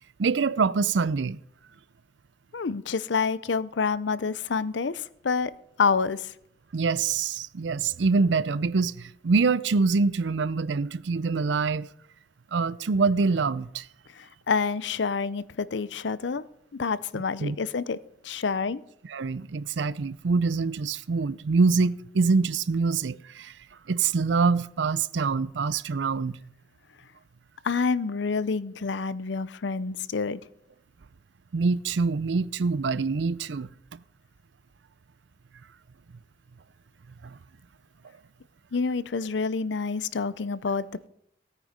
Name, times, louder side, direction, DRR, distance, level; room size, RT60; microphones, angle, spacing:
voice 1, 0.2-1.4 6.7-11.9 12.5-13.9 17.4-17.6 19.1-23.5 23.9-26.4 31.5-34.0 37.2-37.4, right 4 dB, 80° right, 0.5 m, -25 dB
voice 2, 2.5-5.5 5.8-6.3 14.2-16.4 16.7-18.0 18.2-18.8 27.6-30.4 38.7-41.1, left 5 dB, 80° left, 0.6 m, -28 dB
17.0 x 9.1 x 5.2 m
head